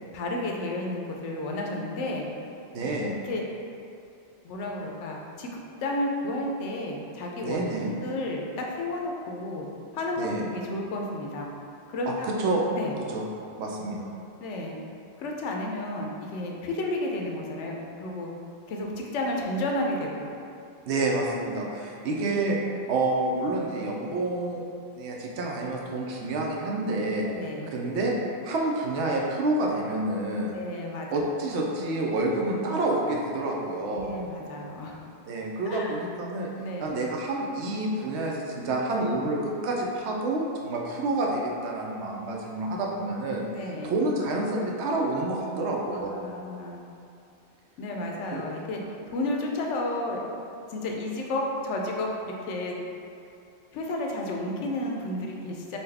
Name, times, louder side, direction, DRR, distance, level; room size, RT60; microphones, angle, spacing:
voice 1, 0.1-2.3 3.0-3.4 4.4-7.6 8.0-9.7 9.9-11.5 11.9-12.3 12.8-13.0 14.4-14.8 15.2-18.3 18.7-20.3 27.2-27.7 30.5-31.4 33.9-35.0 35.7-36.0 36.6-36.9 43.5-44.0 45.9-46.8 47.8-48.8 49.1-50.2 50.7-52.7 53.7-55.8, left 1 dB, 90° left, 0 dB, 0.9 m, -32 dB
voice 2, 2.7-3.2 7.4-7.9 10.2-10.5 12.1-12.6 13.1-13.2 13.6-14.1 20.8-22.6 22.9-24.6 24.9-27.3 27.7-28.1 28.4-30.5 31.1-34.1 35.3-36.5 36.8-43.4 43.8-46.1 48.3-48.4, right 2 dB, 75° right, -1 dB, 0.9 m, -28 dB
4.0 x 2.3 x 3.3 m, 2.6 s
omnidirectional pair, 1.2 m